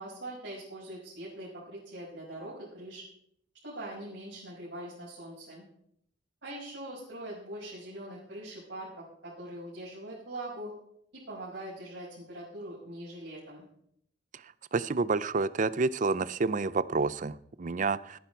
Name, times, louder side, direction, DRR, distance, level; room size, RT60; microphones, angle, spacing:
voice 1, 0.0-3.0 3.6-5.7 6.4-10.7 11.1-13.6, right 1 dB, 70° right, -9 dB, 6.1 m, -42 dB
voice 2, 14.7-18.2, right 4 dB, 45° right, 17 dB, 0.5 m, -29 dB
18.0 x 10.5 x 4.6 m, 0.71 s
head